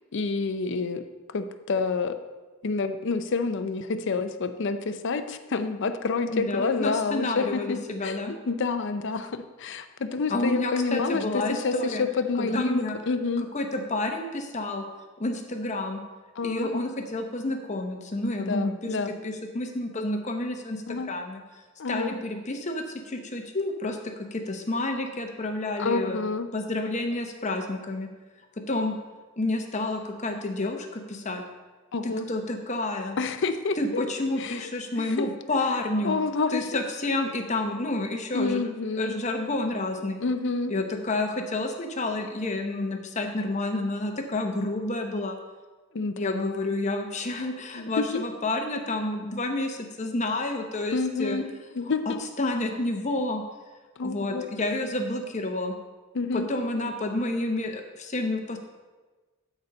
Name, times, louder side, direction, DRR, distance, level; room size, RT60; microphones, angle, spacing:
voice 1, 0.1-1.0 1.3-2.2 2.6-8.2 8.5-13.5 16.4-16.8 18.4-19.1 20.9-21.1 21.8-22.2 25.8-26.5 31.9-32.3 33.2-34.0 34.4-34.7 35.0-35.3 36.0-36.8 38.3-39.1 40.2-40.7 45.9-46.7 47.7-48.2 50.9-52.2 54.0-54.4 56.1-56.5, left 4 dB, 55° left, 9 dB, 0.5 m, -28 dB
voice 2, 6.2-8.3 10.3-12.0 12.4-13.0 13.5-14.8 15.2-16.0 16.4-21.4 21.9-24.0 24.3-26.2 26.5-28.1 28.7-28.9 29.4-31.4 32.0-33.2 33.8-36.2 36.5-38.6 39.0-40.2 40.7-45.4 46.2-51.4 52.1-53.4 54.0-55.7 56.3-58.6, left 2 dB, 35° left, 5 dB, 0.9 m, -29 dB
12.0 x 4.1 x 5.3 m, 1.3 s
head